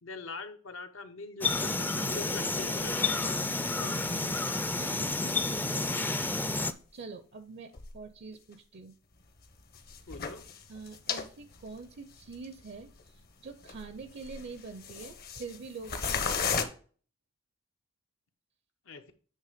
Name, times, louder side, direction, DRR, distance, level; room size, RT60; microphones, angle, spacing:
voice 1, 0.0-3.4 10.1-10.5 18.9-19.0, left 3 dB, 80° left, 7 dB, 0.9 m, -43 dB
sound 1, 1.4-6.7, left 3 dB, 10° left, 0.4 m, -30 dB
voice 2, 3.8-5.9 6.9-9.0 10.7-16.7, right 4 dB, 55° right, 9 dB, 0.5 m, -46 dB
sound 2, 6.7-6.8 7.7-7.9 8.3-8.4 9.7-11.3 11.5-11.6 12.3-12.4 12.9-13.0 13.6-14.0 14.2-15.6 15.8-16.6, left 6 dB, 50° left, 0.8 m, -34 dB
8.4 x 3.2 x 5.0 m, 0.41 s
head